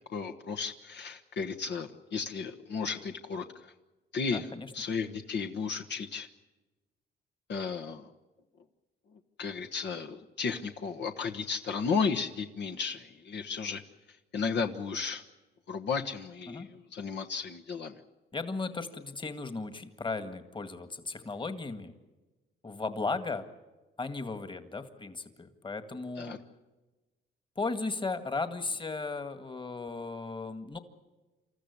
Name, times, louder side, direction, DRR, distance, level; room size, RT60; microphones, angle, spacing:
voice 1, 0.1-3.7 4.1-4.5 4.7-6.3 7.5-8.1 9.4-13.8 14.3-15.2 15.7-18.0 26.2-26.4, left 5 dB, 60° left, 4 dB, 1.3 m, -34 dB
voice 2, 4.3-4.7 16.5-16.7 18.3-21.9 22.6-23.5 24.0-26.4 27.6-30.8, left 3 dB, 25° left, 10 dB, 1.9 m, -36 dB
27.5 x 14.0 x 9.7 m, 1.2 s
cardioid pair, 90°, 20 cm